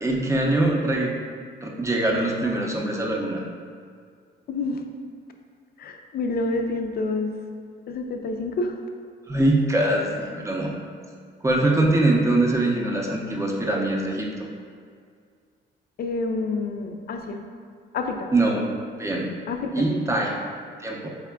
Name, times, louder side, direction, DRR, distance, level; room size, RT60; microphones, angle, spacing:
voice 1, 0.0-1.2 1.6-3.4 9.3-10.7 11.4-14.3 18.3-18.7 19.0-19.3 19.7-20.4 20.8-21.1, right 2 dB, 15° right, -1 dB, 0.6 m, -23 dB
voice 2, 4.5-4.8 5.8-7.3 7.9-8.8 16.0-17.4 17.9-18.3 19.5-19.9, left 3 dB, 50° left, 4 dB, 0.4 m, -28 dB
4.7 x 3.5 x 2.3 m, 2.1 s
cardioid pair, 90°, 20 cm